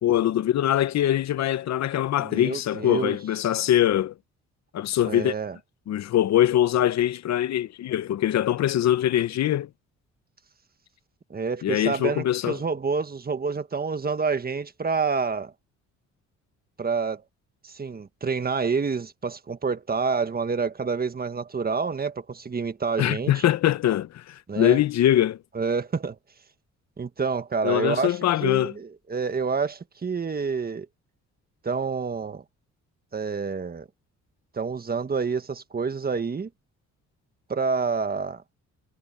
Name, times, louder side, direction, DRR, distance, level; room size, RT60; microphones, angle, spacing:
voice 1, 0.0-4.1 4.7-5.3 5.9-9.7 11.6-12.6 23.0-25.4 27.6-28.7, left 12 dB, 65° left, 0.8 m, -23 dB
voice 2, 2.2-3.2 5.0-5.6 11.3-15.5 16.8-17.2 17.6-23.4 24.5-24.8 25.5-26.1 27.0-30.9 31.6-32.4 33.1-33.9 34.5-36.5 37.5-38.4, right 5 dB, 30° right, 1.5 m, -28 dB
cardioid pair, 90°, 30 cm